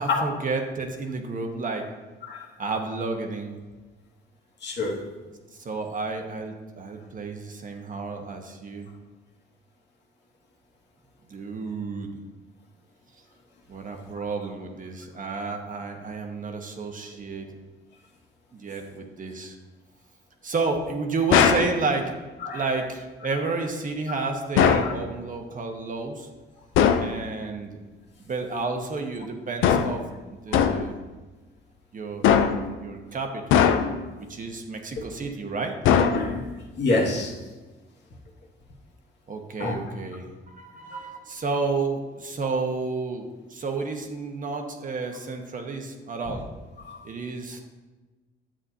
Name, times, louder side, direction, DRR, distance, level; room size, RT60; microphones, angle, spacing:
voice 1, 0.0-1.9 2.6-3.6 5.6-8.9 11.3-12.2 13.7-17.5 18.5-19.6 20.4-22.1 22.5-26.3 27.0-27.8 28.2-31.0 31.9-33.8 34.3-35.7 39.3-46.5 47.0-47.6, right 3 dB, 40° right, 3 dB, 1.2 m, -31 dB
voice 2, 4.6-5.1 22.4-22.6 24.1-24.2 24.8-24.9 30.5-30.6 36.1-36.4 36.7-37.4 39.6-39.8 40.9-41.0 46.8-47.0, left 3 dB, 60° left, -2 dB, 1.8 m, -27 dB
sound 1, 21.3-21.7 24.6-25.0 26.7-27.1 29.6-30.0 30.5-30.9 32.2-32.7 33.5-34.1 35.8-36.5, left 8 dB, 85° left, 0.5 m, -20 dB
10.0 x 7.5 x 2.8 m, 1.2 s
cardioid pair, 90°, 20 cm